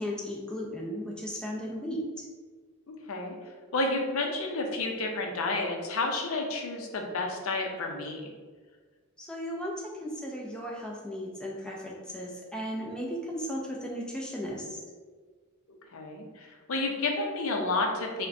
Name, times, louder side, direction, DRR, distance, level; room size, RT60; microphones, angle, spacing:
voice 1, 0.0-2.3 9.2-14.8, equal, 5° left, -3 dB, 0.4 m, -36 dB
voice 2, 3.7-8.3 15.7-18.3, left 2 dB, 70° left, 2 dB, 0.5 m, -31 dB
5.0 x 2.1 x 2.6 m, 1.5 s
head